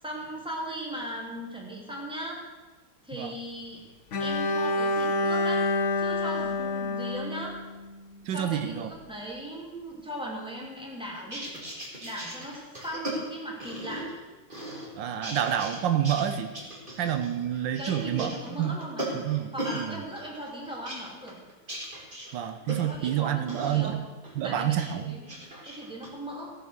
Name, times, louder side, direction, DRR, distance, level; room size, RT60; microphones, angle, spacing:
voice 1, 0.0-2.4 3.0-3.8 4.2-5.6 6.0-7.5 8.3-11.5 12.0-14.0 17.8-19.2 19.5-21.4 22.9-24.0 24.4-24.7 25.0-25.4 25.6-26.5, equal, 5° right, -3 dB, 2.8 m, -38 dB
Bowed string instrument, 4.1-8.2, left 2 dB, 50° left, 1.0 m, -28 dB
voice 2, 8.2-8.9 15.0-16.5 17.0-18.3 18.6-18.8 19.1-20.0 22.3-24.0 24.4-25.2, right 10 dB, 85° right, 9 dB, 1.5 m, -28 dB
sound 1, 11.2-14.2 14.5-15.8 16.0-19.9 20.2-23.1 23.5-23.8 24.2-24.9 25.2-26.1, right 1 dB, 25° right, 2.8 m, -38 dB
16.5 x 7.1 x 6.6 m, 1.2 s
omnidirectional pair, 2.0 m